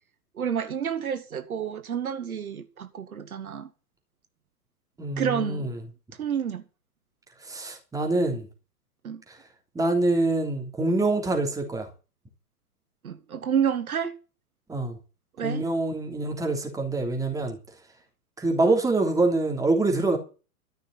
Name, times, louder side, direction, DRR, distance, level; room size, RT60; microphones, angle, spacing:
voice 1, 0.4-3.7 5.2-5.7 6.2-6.6 9.0-9.2 13.0-14.2 15.4-15.6, right 8 dB, 65° right, 1.4 m, -29 dB
voice 2, 5.0-5.7 7.4-8.5 9.7-11.9 14.7-15.0 15.4-17.6 18.4-20.2, right 2 dB, 5° right, 3.2 m, -25 dB
13.5 x 6.4 x 9.7 m
figure-of-eight pair, 110°, 46 cm